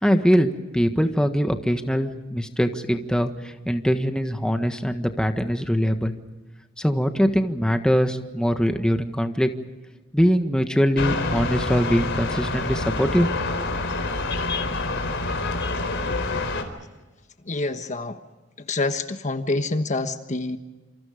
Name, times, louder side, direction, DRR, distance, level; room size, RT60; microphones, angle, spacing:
voice 1, 0.0-6.1 6.8-9.5 10.1-13.6, equal, 5° left, 6 dB, 1.5 m, -22 dB
sound 1, 11.0-16.6, left 2 dB, 65° left, 4.3 m, -27 dB
voice 2, 17.5-18.2 18.7-20.6, left 2 dB, 40° left, 8 dB, 1.4 m, -26 dB
28.0 x 27.5 x 5.2 m, 1.2 s
head